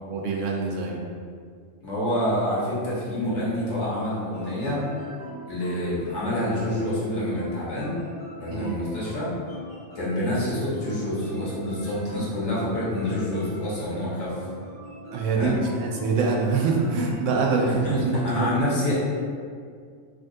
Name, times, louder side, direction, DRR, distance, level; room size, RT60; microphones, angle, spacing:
voice 1, 0.1-1.0 8.5-8.8 15.1-18.0 18.3-18.6, right 4 dB, 85° right, 0 dB, 1.0 m, -25 dB
voice 2, 1.8-4.8 5.5-8.0 8.4-9.3 9.9-14.4 15.3-15.6 17.5-18.9, left 1 dB, 65° left, -8 dB, 1.4 m, -27 dB
sound 1, 3.5-17.2, right 1 dB, 35° left, 0.7 m, -43 dB
5.1 x 2.3 x 2.6 m, 2.1 s
omnidirectional pair, 1.3 m